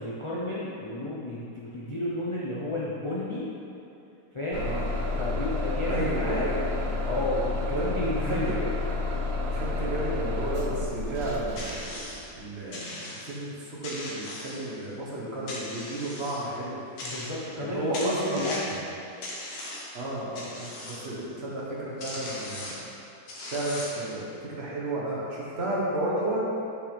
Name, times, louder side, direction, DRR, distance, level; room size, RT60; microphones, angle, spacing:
voice 1, 0.0-3.5 4.3-4.7 5.2-6.4 7.0-8.5 17.0-18.8, left 1 dB, 40° left, -7 dB, 0.4 m, -32 dB
Bus / Engine starting, 4.5-12.3, left 2 dB, 75° right, 0.6 m, -30 dB
voice 2, 5.9-6.7 7.7-7.9 8.2-8.6 9.5-11.8 12.4-16.8 17.6-18.5 19.9-22.9 23.5-26.4, right 1 dB, 40° right, -6 dB, 1.2 m, -32 dB
sound 1, 11.5-12.3 12.7-13.4 13.8-14.9 15.5-16.5 17.0-17.6 17.9-18.8 19.2-20.0 20.4-21.1 21.7-21.8 22.0-22.9 23.3-24.1, left 1 dB, 65° left, 1.5 m, -38 dB
6.4 x 6.1 x 3.4 m, 2.8 s
omnidirectional pair, 1.9 m